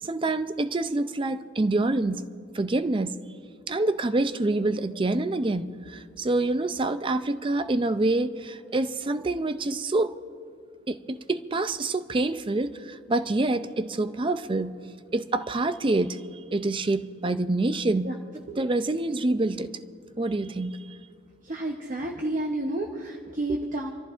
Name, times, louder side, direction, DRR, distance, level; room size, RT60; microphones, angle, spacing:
voice 1, 0.0-2.2 2.5-3.2 3.7-10.1 10.9-14.7 15.1-16.2 16.5-19.7 20.2-20.8 23.5-23.6, right 2 dB, 25° right, 0.4 m, -26 dB
voice 2, 21.4-23.9, right 1 dB, 40° right, 0.8 m, -30 dB
27.5 x 14.0 x 2.5 m
head